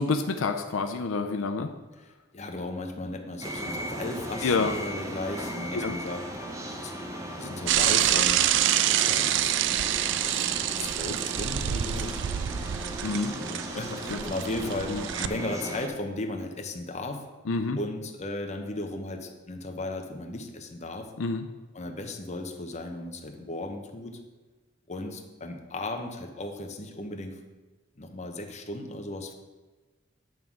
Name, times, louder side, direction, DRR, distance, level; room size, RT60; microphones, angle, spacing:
voice 1, 0.0-1.7 4.4-4.8 5.7-5.9 13.0-13.3 14.1-14.2 14.9-15.0 17.5-17.8 21.2-21.4, left 3 dB, 80° left, 6 dB, 0.5 m, -27 dB
voice 2, 2.0-6.9 7.4-8.5 8.9-9.6 10.3-12.2 13.4-17.2 17.7-21.1 21.7-24.2 24.9-27.4 28.0-29.3, left 2 dB, 35° left, 4 dB, 0.8 m, -36 dB
sound 1, 3.4-15.9, equal, 15° right, 0.8 m, -37 dB
Bicycle / Mechanisms, 7.7-15.3, right 11 dB, 65° right, 0.3 m, -27 dB
9.2 x 3.7 x 6.0 m, 1.3 s
head